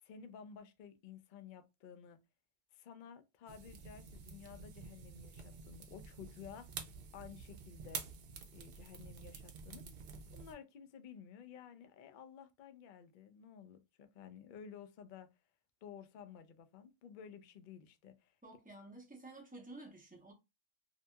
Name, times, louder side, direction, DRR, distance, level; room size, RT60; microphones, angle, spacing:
voice 1, 0.0-2.2 2.7-6.8 7.1-8.0 8.5-9.9 10.3-15.3 15.8-18.4, left 7 dB, 80° left, 0.4 m, -53 dB
sound 1, 3.5-10.5, right 5 dB, 60° right, 0.7 m, -49 dB
voice 2, 18.4-20.3, right 2 dB, 10° right, 0.5 m, -52 dB
2.7 x 2.7 x 2.2 m
omnidirectional pair, 1.4 m